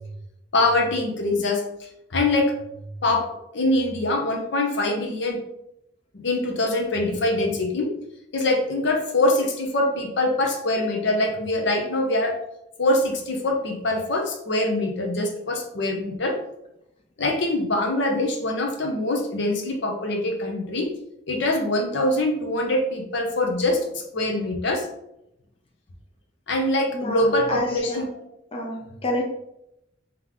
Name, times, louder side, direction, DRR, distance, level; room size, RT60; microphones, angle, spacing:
voice 1, 0.5-2.6 3.0-3.3 3.5-5.4 6.1-7.9 8.3-12.4 12.8-16.4 17.2-20.9 21.3-24.9 26.5-28.1, left 2 dB, 65° left, 3 dB, 0.8 m, -24 dB
voice 2, 26.9-28.1 28.5-29.2, left 1 dB, 30° left, 0 dB, 0.5 m, -29 dB
3.7 x 3.0 x 3.6 m, 0.82 s
head